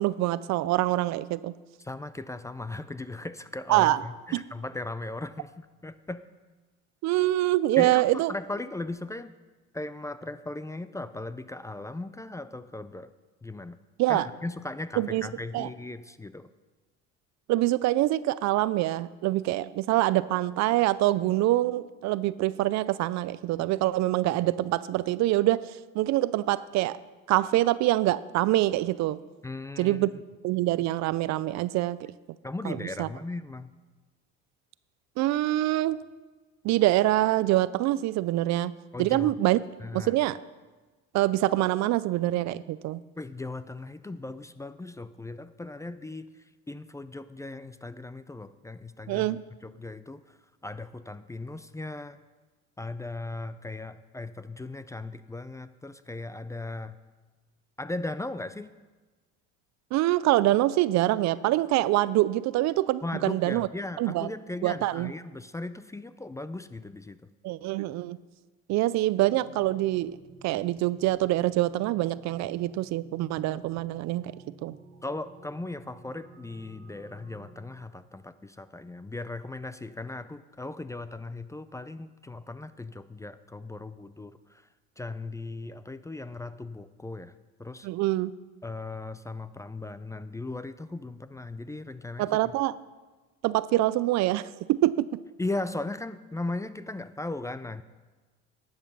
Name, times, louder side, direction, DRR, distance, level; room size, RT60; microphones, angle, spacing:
voice 1, 0.0-1.5 3.7-4.0 4.3-4.4 7.0-8.3 14.0-14.3 15.0-15.2 15.5-15.7 17.5-27.0 27.3-29.2 29.8-30.1 30.4-32.1 32.6-33.1 35.2-36.0 36.6-38.7 39.0-39.6 39.9-40.4 41.1-43.0 49.1-49.4 59.9-63.7 64.0-64.3 64.6-65.1 67.4-68.2 68.7-70.2 70.4-74.3 74.6-74.8 87.8-88.3 92.2-92.7 93.4-95.1, right 16 dB, 65° right, 18 dB, 0.4 m, -25 dB
voice 2, 1.8-6.2 7.8-9.3 9.7-13.1 13.4-13.8 14.1-16.5 29.4-30.1 32.4-33.7 38.9-39.3 39.8-40.1 43.2-46.3 46.7-52.2 52.8-57.0 57.8-58.7 63.0-67.3 75.0-84.7 85.0-87.3 87.6-87.9 88.6-92.5 95.4-97.8, left 2 dB, 10° left, 13 dB, 0.4 m, -37 dB
sound 1, 69.2-77.8, right 3 dB, 50° right, 2.0 m, -52 dB
11.0 x 8.0 x 5.4 m, 1.3 s
supercardioid pair, 90°, 30 cm